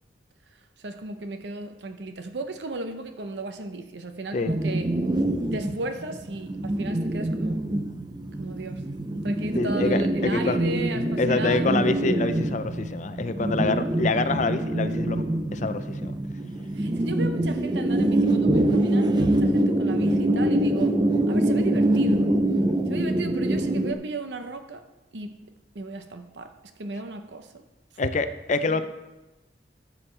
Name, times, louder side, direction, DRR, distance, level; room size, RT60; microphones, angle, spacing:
voice 1, 0.8-4.9 5.5-7.6 8.4-8.8 9.2-11.9 16.8-21.0 21.3-22.3 22.9-24.8 25.1-25.5 25.7-26.5 26.8-27.6 28.6-28.8, right 2 dB, 70° right, 7 dB, 0.7 m, -35 dB
sound 1, 4.5-23.9, right 1 dB, 25° right, 0.5 m, -24 dB
voice 2, 9.6-10.6 10.9-15.2 15.5-16.2 28.0-28.9, left 3 dB, 40° left, 11 dB, 0.5 m, -26 dB
12.5 x 7.4 x 3.3 m, 1.0 s
head